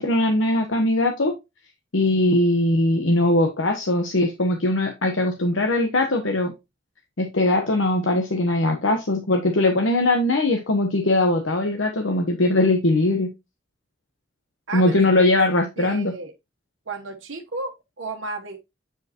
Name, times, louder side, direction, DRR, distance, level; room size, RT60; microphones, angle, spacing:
voice 1, 0.0-1.3 1.9-6.5 7.2-13.3 14.7-16.1, left 2 dB, 80° left, 1.2 m, -20 dB
voice 2, 14.7-15.0 15.8-16.3 16.9-18.6, right 3 dB, 85° right, 1.1 m, -33 dB
8.5 x 4.9 x 2.9 m
head